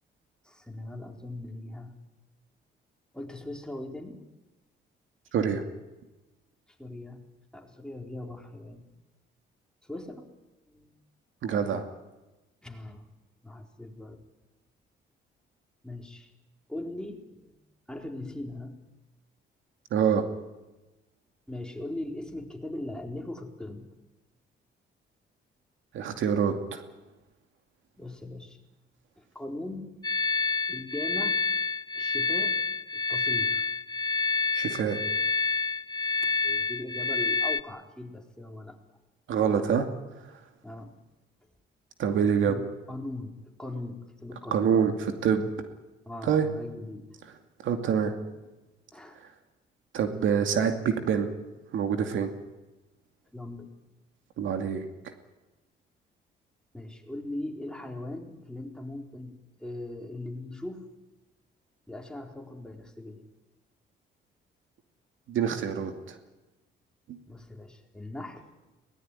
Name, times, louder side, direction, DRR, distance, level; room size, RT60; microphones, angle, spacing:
voice 1, 0.4-1.9 3.1-4.2 6.7-7.3 7.5-8.8 9.8-10.3 10.7-10.9 12.6-13.1 13.4-14.2 15.8-16.3 16.7-17.5 17.9-18.8 21.5-23.9 27.9-28.6 29.2-29.9 30.7-31.4 31.9-32.6 32.9-33.7 36.2-38.8 40.6-41.0 42.5-42.6 42.9-44.7 46.1-47.2 48.9-49.2 53.3-53.7 56.7-59.3 59.6-60.9 61.9-63.3 67.3-68.5, left 1 dB, 5° left, 2 dB, 4.1 m, -39 dB
voice 2, 5.3-5.7 11.4-11.9 19.9-20.2 25.9-26.8 34.5-35.0 39.3-40.5 42.0-42.6 44.5-45.5 46.2-46.5 47.3-47.4 47.6-48.1 49.1-49.3 49.9-51.3 51.7-52.3 54.4-55.1 65.3-66.2 67.1-67.2, right 7 dB, 75° right, 6 dB, 2.5 m, -26 dB
sound 1, 30.0-37.6, left 4 dB, 20° left, 0.7 m, -28 dB
21.5 x 19.0 x 9.9 m, 1.1 s
cardioid pair, 90°, 20 cm